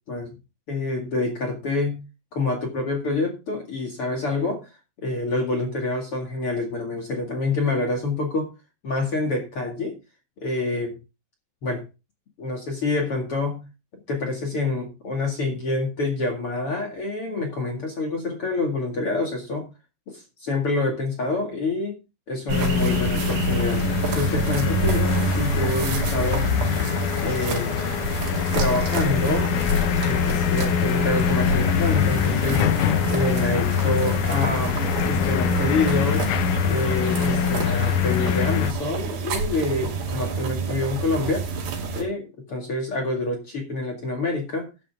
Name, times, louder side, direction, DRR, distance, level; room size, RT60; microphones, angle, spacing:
voice 1, 0.7-2.0 2.3-4.7 5.0-8.5 8.8-10.0 10.4-11.0 11.6-11.8 12.4-13.6 14.1-19.7 20.1-22.0 22.3-23.8 24.1-26.5 27.2-27.7 28.5-29.5 30.0-32.7 33.1-34.8 35.1-36.3 36.7-41.5 41.9-44.7, left 2 dB, 40° left, 2 dB, 2.4 m, -27 dB
sound 1, 22.5-38.7, left 9 dB, 80° left, 1.8 m, -24 dB
sound 2, 22.5-42.0, right 4 dB, 80° right, 4.6 m, -28 dB
13.0 x 9.2 x 3.6 m, 0.29 s
omnidirectional pair, 4.8 m